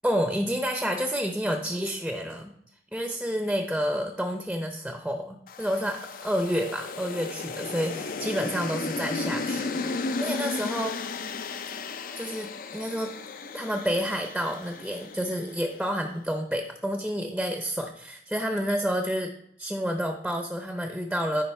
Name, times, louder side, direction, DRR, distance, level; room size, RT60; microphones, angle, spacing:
voice 1, 0.0-2.5 2.9-9.7 9.9-11.0 12.2-13.1 13.5-19.3 19.6-21.4, equal, ahead, 4 dB, 0.6 m, -29 dB
sound 1, 5.5-15.8, left 3 dB, 50° left, 0.5 m, -34 dB
14.0 x 5.0 x 3.5 m, 0.73 s
head